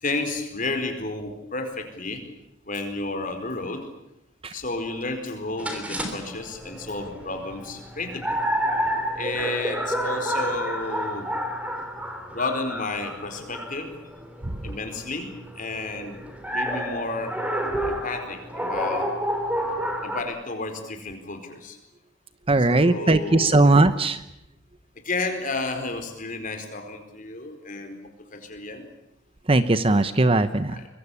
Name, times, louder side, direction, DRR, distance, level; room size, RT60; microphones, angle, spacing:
voice 1, 0.0-2.2 2.7-3.9 4.5-8.4 9.1-11.3 12.3-13.9 14.6-16.2 16.5-17.4 17.9-19.1 20.0-21.8 22.7-23.7 25.0-28.9 30.7-30.9, left 2 dB, 40° left, 6 dB, 4.6 m, -32 dB
sound 1, 5.6-20.2, equal, 5° right, 3.3 m, -30 dB
voice 2, 22.5-24.2 29.5-30.8, right 2 dB, 30° right, 12 dB, 0.9 m, -19 dB
24.5 x 22.5 x 8.5 m, 0.81 s
head